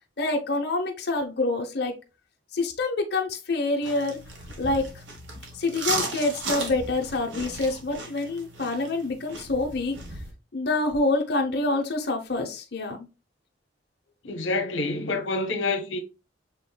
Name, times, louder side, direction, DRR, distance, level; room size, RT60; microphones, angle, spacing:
voice 1, 0.2-1.9 2.5-4.2 4.6-5.0 5.5-9.9 10.5-13.0, left 2 dB, 60° left, 0.8 m, -26 dB
sound 1, 3.8-10.3, right 3 dB, 75° right, 1.3 m, -35 dB
voice 2, 14.2-16.0, left 3 dB, 90° left, 0.9 m, -27 dB
7.5 x 2.9 x 2.2 m
head